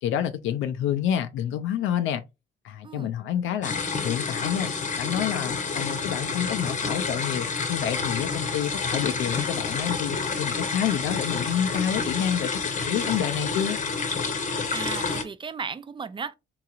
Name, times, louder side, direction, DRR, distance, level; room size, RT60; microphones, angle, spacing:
voice 1, 0.0-2.2 2.6-3.7 4.0-4.7 5.0-13.8, left 9 dB, 80° left, 0.4 m, -28 dB
sound 1, 3.6-15.2, left 4 dB, 35° left, 0.8 m, -29 dB
voice 2, 14.7-16.3, right 5 dB, 25° right, 0.4 m, -35 dB
3.7 x 3.0 x 2.3 m
cardioid pair, 90°, 20 cm